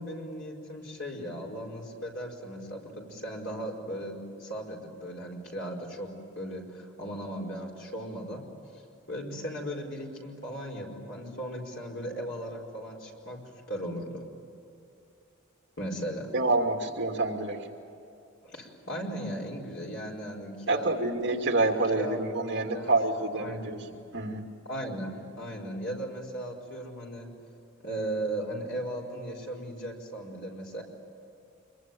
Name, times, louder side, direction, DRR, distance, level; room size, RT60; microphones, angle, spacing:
voice 1, 0.0-4.1 4.4-6.1 6.3-8.4 8.7-8.8 9.1-13.4 13.7-14.2 15.8-16.3 18.4-21.0 21.9-22.9 23.3-23.7 24.6-27.3 27.8-30.8, right 1 dB, 60° left, -1 dB, 4.9 m, -37 dB
voice 2, 16.3-17.7 20.7-23.8 24.1-24.4, right 2 dB, 55° right, 2 dB, 2.8 m, -27 dB
26.0 x 23.0 x 9.4 m, 2.6 s
head